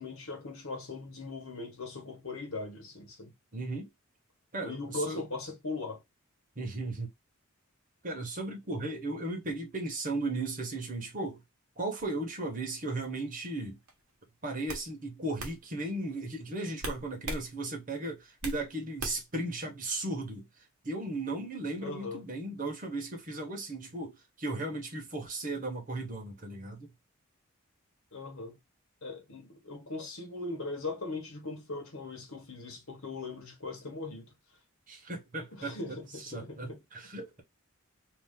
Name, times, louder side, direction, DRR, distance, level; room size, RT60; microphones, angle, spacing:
voice 1, 0.0-3.3 4.6-6.0 21.8-22.2 28.1-28.6 29.0-34.3 35.5-36.8, left 3 dB, 70° left, 1.2 m, -39 dB
voice 2, 3.5-3.9 4.5-5.2 6.6-7.1 8.0-11.4 11.8-13.8 14.4-20.5 20.8-26.9 34.9-37.4, right 2 dB, 35° right, 1.1 m, -36 dB
sound 1, 13.9-14.1 14.7-14.9 15.4-15.6 16.8-17.5 17.8-18.6 19.0-19.4, right 2 dB, 75° right, 1.0 m, -37 dB
2.8 x 2.7 x 3.6 m
head